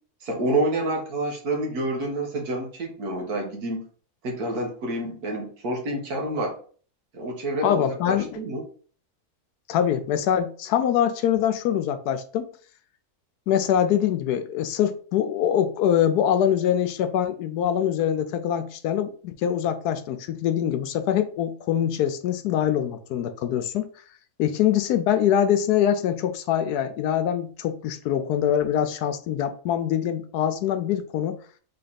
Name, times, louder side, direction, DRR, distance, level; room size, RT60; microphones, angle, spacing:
voice 1, 0.2-3.8 4.2-6.5 7.1-8.6, right 1 dB, 70° right, 1.7 m, -28 dB
voice 2, 7.6-8.4 9.7-12.5 13.5-23.9 24.4-31.4, left 10 dB, 80° left, 1.1 m, -24 dB
3.8 x 3.3 x 4.0 m
omnidirectional pair, 1.7 m